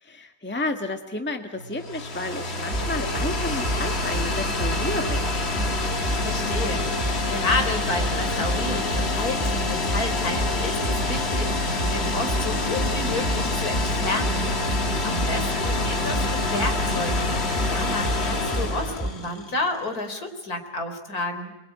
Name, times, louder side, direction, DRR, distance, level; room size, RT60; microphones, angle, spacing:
voice 1, 0.0-5.2, left 2 dB, 5° left, 5 dB, 1.7 m, -31 dB
sound 1, 1.6-19.7, left 3 dB, 40° left, 2.3 m, -27 dB
sound 2, 2.7-19.1, right 1 dB, 10° right, 5.8 m, -30 dB
voice 2, 6.2-17.4 17.7-21.5, left 2 dB, 70° left, 6 dB, 4.3 m, -31 dB
29.0 x 22.5 x 9.1 m, 1.0 s
omnidirectional pair, 1.6 m